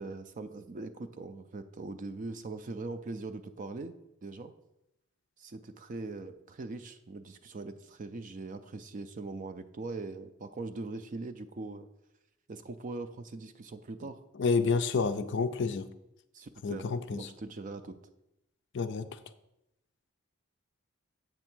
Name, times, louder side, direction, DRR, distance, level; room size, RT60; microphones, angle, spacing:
voice 1, 0.0-3.9 4.2-4.5 5.4-11.9 12.5-14.2 16.3-18.0, right 3 dB, 35° right, 10 dB, 0.4 m, -41 dB
voice 2, 14.4-15.9 16.6-17.3 18.7-19.1, left 4 dB, 55° left, 11 dB, 0.4 m, -29 dB
7.9 x 3.6 x 6.0 m, 0.87 s
head